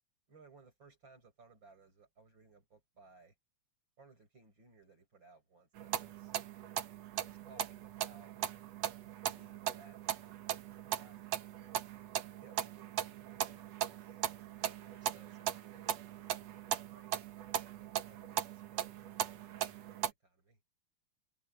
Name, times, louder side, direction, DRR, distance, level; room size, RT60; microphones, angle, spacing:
voice 1, 0.3-3.3 4.0-6.4 7.2-8.3 9.2-11.7 12.4-14.2 14.8-15.9 16.2-17.2 17.8-20.6, right 4 dB, 30° right, 8.2 m, -63 dB
sound 1, 5.8-20.1, right 11 dB, 60° right, 1.9 m, -39 dB
omnidirectional pair, 4.3 m